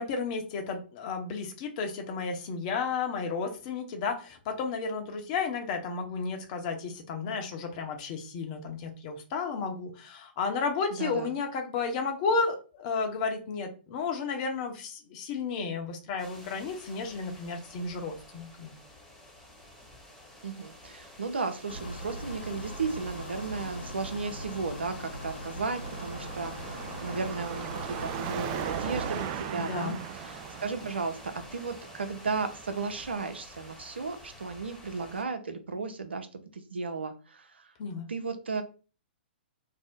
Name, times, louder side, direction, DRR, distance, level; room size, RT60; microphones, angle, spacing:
voice 1, 0.0-18.7 29.6-30.0 37.8-38.1, left 4 dB, 40° left, 4 dB, 0.7 m, -32 dB
voice 2, 10.9-11.3 20.4-37.7 38.1-38.6, right 4 dB, 80° right, 8 dB, 0.6 m, -35 dB
sound 1, 16.2-35.2, left 1 dB, ahead, 1.0 m, -49 dB
sound 2, 21.7-29.3, equal, 80° left, 1.1 m, -41 dB
Car passing by / Traffic noise roadway noise / Engine, 25.8-33.1, right 9 dB, 35° right, 0.3 m, -38 dB
2.6 x 2.0 x 3.6 m, 0.36 s
hypercardioid pair, 120°, 6 cm